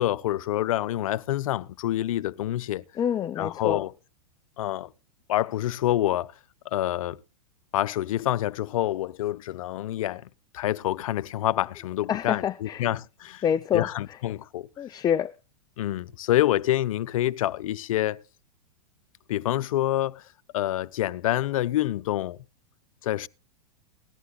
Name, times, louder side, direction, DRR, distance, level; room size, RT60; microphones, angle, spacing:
voice 1, 0.0-2.8 3.4-3.9 4.6-4.9 5.3-6.3 6.6-7.2 7.7-10.3 10.5-13.4 13.7-14.7 15.8-18.2 19.3-20.3 20.5-22.4 23.0-23.3, left 14 dB, 65° left, 0.7 m, -27 dB
voice 2, 3.0-3.8 12.1-12.9 13.4-13.9 14.8-15.3, left 9 dB, 20° left, 0.5 m, -26 dB
18.5 x 13.5 x 2.3 m
hypercardioid pair, 110°, 19 cm